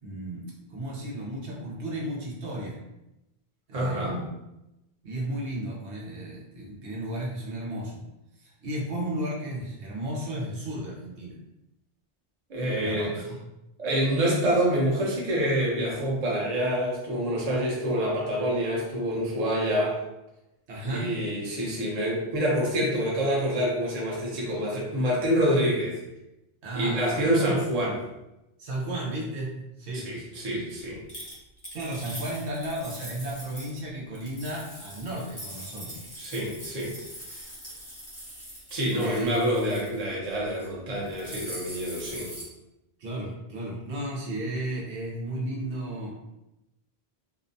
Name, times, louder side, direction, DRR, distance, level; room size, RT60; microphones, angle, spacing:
voice 1, 0.0-2.8 3.7-4.3 5.0-8.0 8.4-11.4 12.8-13.4 20.7-21.2 26.6-27.5 28.6-30.1 31.7-36.0 39.0-39.4 43.0-46.1, right 1 dB, 85° right, -3 dB, 1.0 m, -34 dB
voice 2, 3.7-4.2 12.5-13.1 13.8-20.0 20.8-26.0 26.7-28.0 29.9-31.0 36.2-36.9 38.7-42.3, equal, 40° right, -4 dB, 0.7 m, -27 dB
sound 1, 31.1-33.8 34.1-40.0 40.4-40.7 40.9-42.4, equal, 25° left, 0.6 m, -42 dB
2.6 x 2.1 x 2.5 m, 0.91 s
omnidirectional pair, 1.1 m